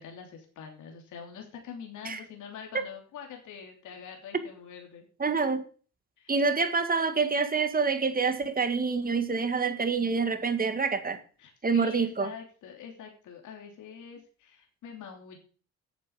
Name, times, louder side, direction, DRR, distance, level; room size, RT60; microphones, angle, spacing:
voice 1, 0.0-5.1 6.2-6.3 11.4-15.4, left 7 dB, 80° left, 2 dB, 3.0 m, -45 dB
voice 2, 5.2-5.6 6.3-11.2 11.6-12.3, right 4 dB, 30° right, 9 dB, 1.9 m, -27 dB
9.3 x 7.3 x 8.1 m, 0.41 s
cardioid pair, 90°, 30 cm